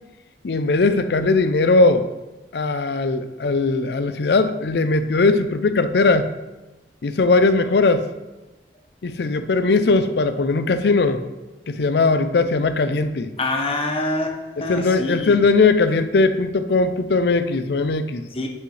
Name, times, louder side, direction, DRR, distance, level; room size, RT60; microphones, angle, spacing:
voice 1, 0.4-2.1 2.5-6.3 7.0-8.1 9.0-11.2 11.7-13.3 14.6-18.2, left 3 dB, 65° left, 11 dB, 0.5 m, -19 dB
voice 2, 13.4-15.4 18.3-18.5, left 2 dB, 30° left, 2 dB, 0.9 m, -25 dB
8.4 x 5.5 x 3.3 m, 1.1 s
head